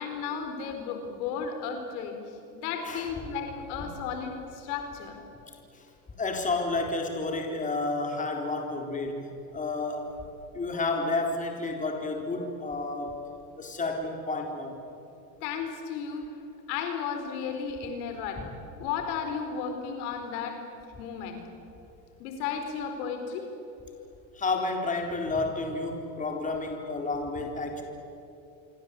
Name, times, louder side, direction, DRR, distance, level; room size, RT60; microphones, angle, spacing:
voice 1, 0.0-5.2 15.4-16.3 16.7-18.4 18.8-20.6 21.0-21.4 22.2-23.4, left 6 dB, 65° left, 5 dB, 4.5 m, -34 dB
voice 2, 6.2-9.3 9.5-10.1 10.5-13.2 13.6-14.7 24.3-27.8, left 3 dB, 15° left, 2 dB, 4.1 m, -30 dB
27.5 x 24.0 x 8.4 m, 2.9 s
supercardioid pair, 125°, 48 cm